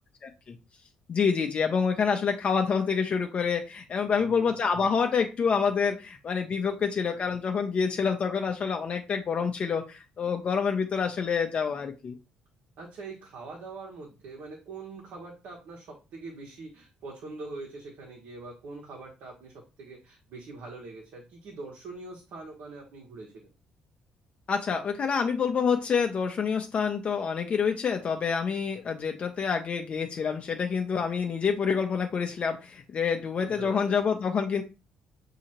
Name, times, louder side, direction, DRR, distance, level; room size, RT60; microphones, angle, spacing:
voice 1, 0.2-0.6 1.1-12.2 24.5-34.6, left 6 dB, 40° left, 4 dB, 0.6 m, -27 dB
voice 2, 4.1-4.5 12.8-23.4 33.3-34.0, right 3 dB, 75° right, -1 dB, 1.2 m, -43 dB
6.3 x 2.8 x 2.9 m, 0.28 s
cardioid pair, 125°, 3 cm